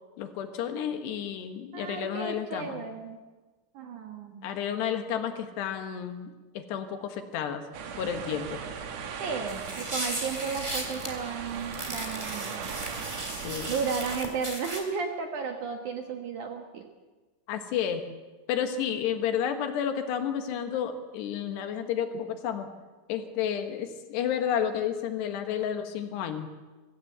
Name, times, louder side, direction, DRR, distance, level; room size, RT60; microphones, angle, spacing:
voice 1, 0.2-2.8 4.4-7.6 8.0-8.6 13.4-13.7 17.5-18.1 18.5-22.7 23.1-26.5, left 8 dB, 70° left, 7 dB, 3.2 m, -31 dB
voice 2, 1.7-3.2 3.7-4.5 9.2-12.7 13.7-16.9, right 5 dB, 70° right, 4 dB, 1.9 m, -34 dB
sound 1, 7.7-14.2, right 6 dB, 85° right, 1.5 m, -38 dB
sound 2, 9.5-11.1 11.7-14.8, right 1 dB, 15° right, 2.2 m, -36 dB
23.5 x 16.0 x 8.0 m, 1.3 s
omnidirectional pair, 5.6 m